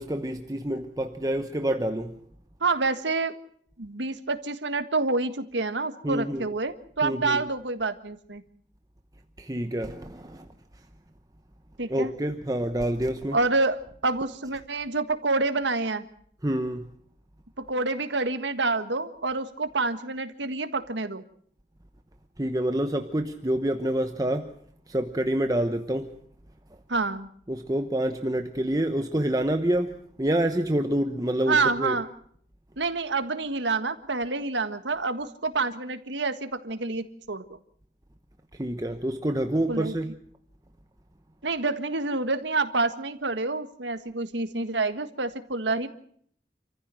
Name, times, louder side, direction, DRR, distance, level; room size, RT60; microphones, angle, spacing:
voice 1, 0.0-2.2 6.0-6.5 7.0-7.5 9.4-10.9 11.9-13.4 16.4-16.9 22.4-24.5 24.9-26.2 27.5-32.0 38.5-40.2, right 1 dB, 20° right, 1.0 m, -27 dB
voice 2, 2.6-3.3 3.8-8.4 11.8-12.1 13.3-16.1 17.6-21.2 26.9-27.3 31.5-32.1 32.8-37.4 39.7-39.9 41.4-45.9, right 3 dB, 85° right, 1.7 m, -28 dB
28.0 x 15.0 x 7.6 m
head